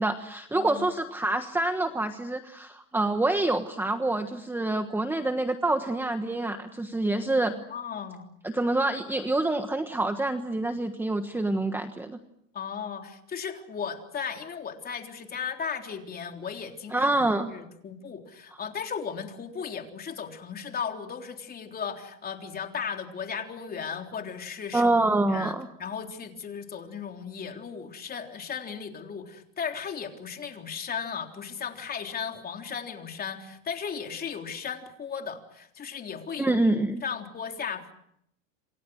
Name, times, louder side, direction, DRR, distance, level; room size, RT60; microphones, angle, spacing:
voice 1, 0.0-7.5 8.4-12.2 16.9-17.5 24.7-25.7 36.4-37.0, right 2 dB, 5° right, 7 dB, 1.3 m, -26 dB
voice 2, 0.5-0.9 7.5-8.2 12.5-25.5 25.8-36.6 37.0-37.9, left 6 dB, 25° left, 4 dB, 3.7 m, -36 dB
27.5 x 27.0 x 6.4 m, 0.75 s
supercardioid pair, 135°, 38 cm